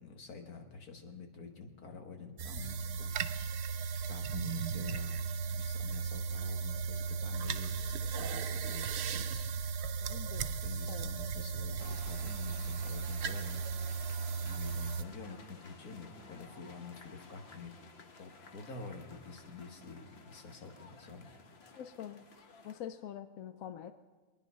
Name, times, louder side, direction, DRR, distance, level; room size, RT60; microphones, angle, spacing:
voice 1, 0.0-3.1 4.1-5.2 5.4-9.5 10.4-13.6 14.0-14.2 14.4-17.7 18.2-21.3, left 4 dB, 90° left, 4 dB, 2.0 m, -48 dB
sound 1, 2.4-15.0, right 5 dB, 60° right, 0.7 m, -36 dB
voice 2, 10.1-10.5 10.9-11.2 21.7-22.2 22.6-23.9, left 10 dB, 75° left, 10 dB, 1.0 m, -45 dB
sound 2, 11.8-22.8, left 3 dB, 50° left, 1.2 m, -55 dB
23.5 x 10.0 x 5.5 m, 1.3 s
omnidirectional pair, 1.5 m